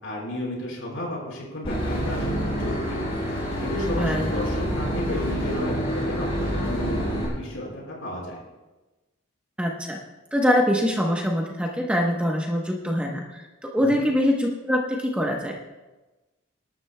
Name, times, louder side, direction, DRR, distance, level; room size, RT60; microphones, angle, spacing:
voice 1, 0.0-3.0 3.6-7.0 7.3-8.4 13.8-14.0, left 1 dB, 65° left, -2 dB, 4.6 m, -33 dB
Boat Water vehicle / Engine, 1.6-7.3, equal, 25° left, 5.1 m, -27 dB
voice 2, 4.0-4.3 9.6-10.0 10.3-15.6, equal, 5° right, 0 dB, 0.9 m, -24 dB
26.0 x 12.0 x 2.2 m, 1.1 s
head